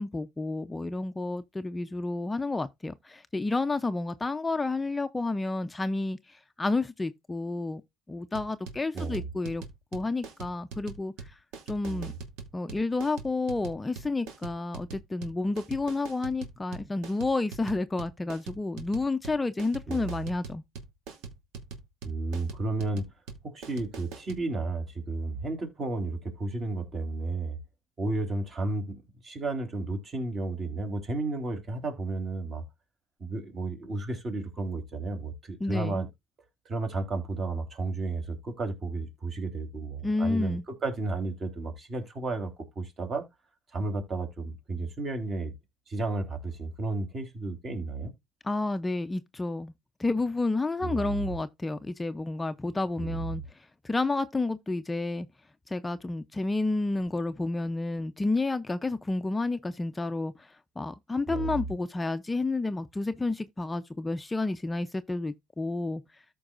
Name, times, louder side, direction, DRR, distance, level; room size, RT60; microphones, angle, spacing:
voice 1, 0.0-7.8 8.1-9.6 9.9-11.4 11.7-12.1 12.5-20.6 35.6-36.0 40.0-40.6 48.4-49.7 50.0-55.3 55.7-66.2, left 2 dB, 15° left, 0.5 m, -30 dB
sound 1, 8.3-24.4, right 5 dB, 85° right, 2.6 m, -43 dB
voice 2, 8.9-9.3 11.8-12.2 19.9-20.2 22.0-23.1 23.4-27.6 28.0-32.6 33.2-36.1 36.7-43.2 43.7-45.5 45.9-48.1 50.8-51.3 53.0-53.3 61.3-61.6, right 3 dB, 35° right, 3.5 m, -33 dB
13.5 x 5.3 x 2.5 m
cardioid pair, 115°, 0 cm